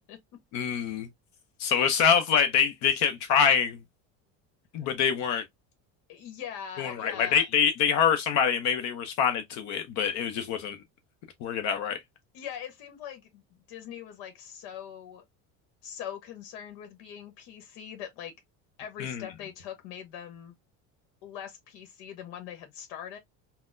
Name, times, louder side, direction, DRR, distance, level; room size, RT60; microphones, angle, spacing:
voice 1, 0.5-1.1 1.6-3.8 4.7-5.4 6.8-10.8 11.4-12.0 19.0-19.3, left 7 dB, 50° left, 0.7 m, -25 dB
voice 2, 6.1-7.4 12.3-13.4 13.7-15.2 15.8-18.3 18.8-20.5 21.2-23.2, left 9 dB, 80° left, 1.0 m, -41 dB
3.9 x 2.2 x 2.5 m
cardioid pair, 170°, 35 cm